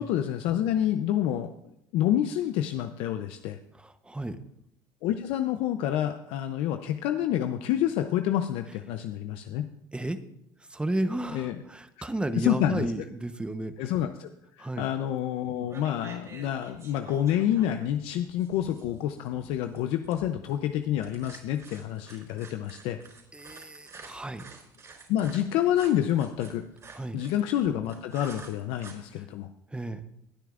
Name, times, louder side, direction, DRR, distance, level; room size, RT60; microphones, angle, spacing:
voice 1, 0.0-1.5 1.9-3.6 5.0-9.7 11.3-11.6 12.0-12.1 12.3-12.9 13.8-14.3 14.6-23.0 25.1-26.6 27.1-29.5, left 11 dB, 70° left, 7 dB, 0.7 m, -28 dB
voice 2, 3.7-4.4 9.9-10.2 10.7-13.7 14.6-14.9 23.3-24.4 26.9-27.2 29.7-30.0, right 1 dB, 10° right, 10 dB, 0.9 m, -33 dB
sound 1, 15.1-15.4 15.7-28.9, right 4 dB, 30° right, 4.1 m, -49 dB
20.0 x 9.1 x 2.5 m, 0.77 s
supercardioid pair, 90°, 10 cm